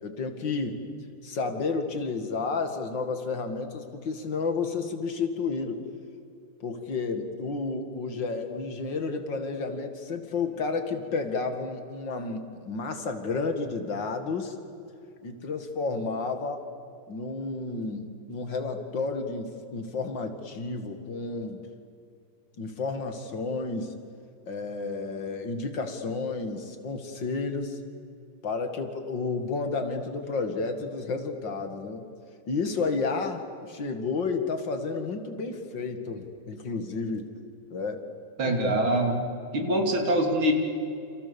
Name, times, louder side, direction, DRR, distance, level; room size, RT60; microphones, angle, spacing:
voice 1, 0.0-0.8 1.2-5.8 6.6-14.6 15.2-16.7 17.1-21.6 22.6-23.9 24.5-27.8 28.4-32.1 32.5-37.3 37.7-38.0 38.4-38.9 40.1-40.2, left 4 dB, 65° left, 6 dB, 2.7 m, -31 dB
voice 2, 38.4-39.2 39.5-40.5, right 1 dB, 90° right, 2 dB, 4.0 m, -24 dB
29.0 x 28.0 x 7.0 m, 2.5 s
omnidirectional pair, 2.2 m